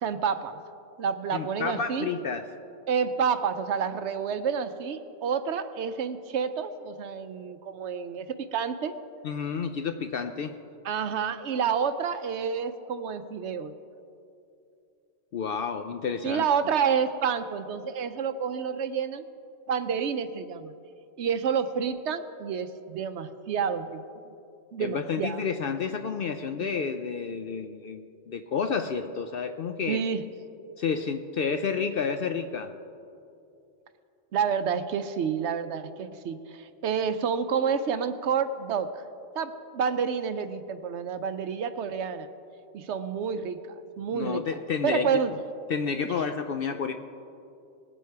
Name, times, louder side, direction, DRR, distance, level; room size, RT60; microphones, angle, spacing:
voice 1, 0.0-0.6 1.0-2.1 2.9-8.9 10.8-13.7 16.2-19.2 19.7-20.7 21.2-24.0 24.7-25.4 29.9-30.2 31.8-31.9 34.3-38.9 39.4-42.3 42.7-43.6 44.0-44.4 44.8-45.3, right 6 dB, 65° right, 11 dB, 0.8 m, -29 dB
voice 2, 1.3-2.5 9.2-10.6 15.3-16.5 24.8-30.1 30.8-32.7 44.1-45.1 45.7-46.9, left 6 dB, 60° left, 8 dB, 0.6 m, -30 dB
19.5 x 7.8 x 4.6 m, 2.6 s
omnidirectional pair, 1.3 m